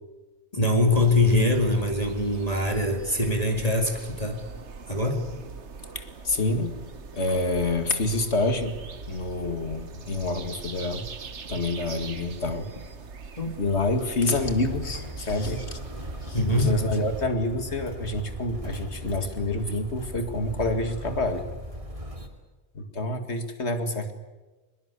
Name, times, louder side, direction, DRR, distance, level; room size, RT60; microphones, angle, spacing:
voice 1, 0.5-4.4 4.9-5.2 13.4-13.6 16.3-16.8, left 2 dB, 35° left, 3 dB, 2.4 m, -23 dB
sound 1, 0.9-17.3, right 4 dB, 85° right, 1.6 m, -42 dB
voice 2, 5.9-6.8 7.1-8.8 9.1-11.1 11.5-12.7 13.6-15.8 16.2-21.4 22.7-24.1, left 2 dB, 75° left, 7 dB, 2.5 m, -27 dB
Motor vehicle (road), 14.3-22.3, right 1 dB, 30° right, 2.7 m, -38 dB
22.5 x 21.5 x 8.3 m, 1.2 s
omnidirectional pair, 1.1 m